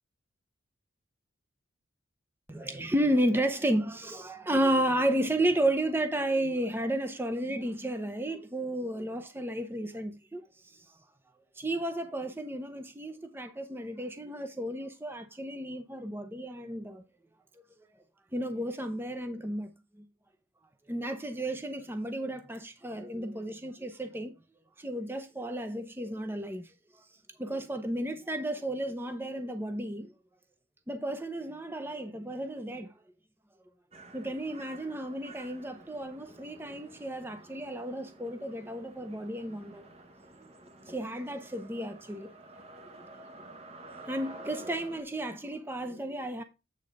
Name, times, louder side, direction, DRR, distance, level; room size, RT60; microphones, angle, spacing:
voice 1, 2.5-10.8 11.6-17.0 18.3-19.7 20.0-20.1 20.9-24.4 24.8-27.0 27.4-30.1 30.9-32.9 34.1-39.8 40.9-42.3 44.1-46.4, right 1 dB, 10° right, 0.6 m, -32 dB
sound 1, 33.9-45.0, right 2 dB, 30° right, 1.0 m, -51 dB
8.6 x 3.8 x 5.2 m
head